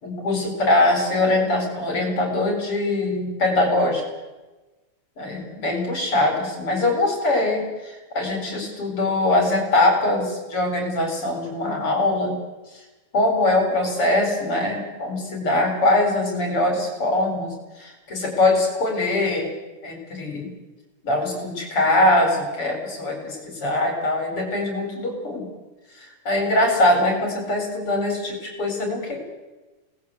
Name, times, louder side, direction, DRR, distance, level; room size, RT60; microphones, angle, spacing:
voice 1, 0.0-4.0 5.2-12.4 13.1-19.5 19.8-20.5 21.0-25.5 26.0-29.2, left 2 dB, 45° left, 3 dB, 5.3 m, -22 dB
27.0 x 19.0 x 8.0 m, 1.2 s
omnidirectional pair, 3.5 m